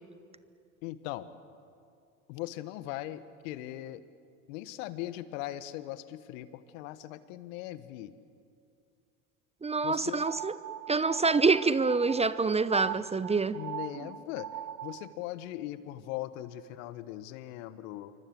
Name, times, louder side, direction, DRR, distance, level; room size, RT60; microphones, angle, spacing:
voice 1, 0.8-1.3 2.3-4.0 4.5-8.1 9.8-10.2 13.5-14.5 14.8-18.1, left 14 dB, 70° left, 1.5 m, -39 dB
voice 2, 9.6-10.5 10.9-13.6, right 4 dB, 15° right, 0.8 m, -26 dB
sound 1, 10.2-15.1, right 11 dB, 45° right, 1.0 m, -40 dB
27.5 x 24.5 x 7.9 m
hypercardioid pair, 75°, 41 cm